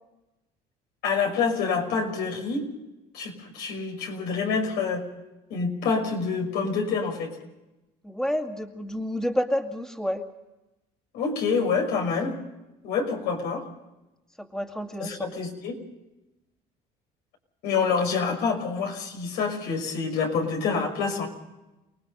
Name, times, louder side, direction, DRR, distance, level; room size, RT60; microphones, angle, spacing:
voice 1, 1.0-2.7 3.1-5.1 5.5-7.4 11.1-12.4 12.8-13.7 15.0-15.8 17.6-21.3, left 5 dB, 80° left, 3 dB, 6.0 m, -27 dB
voice 2, 8.0-10.2 14.4-15.3, equal, 5° left, 4 dB, 2.3 m, -29 dB
29.5 x 19.0 x 5.5 m, 0.99 s
cardioid pair, 95°, 17 cm